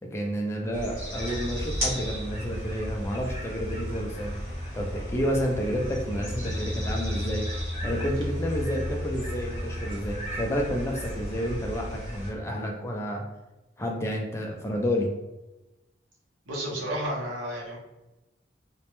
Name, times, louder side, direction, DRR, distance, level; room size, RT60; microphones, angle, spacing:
voice 1, 0.1-4.3 4.7-7.5 7.8-13.2 13.8-15.1, equal, 15° left, 0 dB, 0.4 m, -30 dB
sound 1, 0.7-12.3, equal, 10° right, 0.9 m, -33 dB
voice 2, 16.5-17.8, right 1 dB, 75° right, -4 dB, 0.7 m, -31 dB
2.1 x 2.0 x 2.9 m, 1.0 s
head